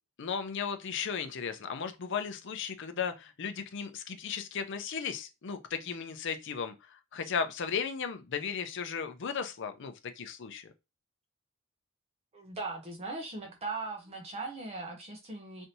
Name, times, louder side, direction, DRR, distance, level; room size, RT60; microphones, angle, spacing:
voice 1, 0.2-10.7, left 6 dB, 60° left, 0.6 m, -36 dB
voice 2, 12.3-15.7, right 3 dB, 30° right, 0.7 m, -39 dB
3.2 x 2.7 x 2.7 m
head